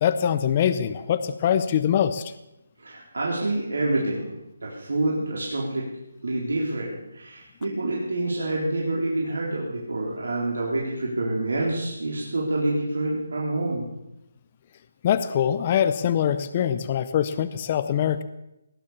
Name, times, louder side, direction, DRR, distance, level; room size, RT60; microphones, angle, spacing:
voice 1, 0.0-2.3 15.0-18.2, left 9 dB, 20° left, 11 dB, 0.5 m, -23 dB
voice 2, 2.8-4.3 4.6-5.8 6.2-13.8, right 2 dB, 80° right, -3 dB, 3.9 m, -27 dB
19.0 x 10.0 x 7.1 m, 0.92 s
hypercardioid pair, 175°, 0 cm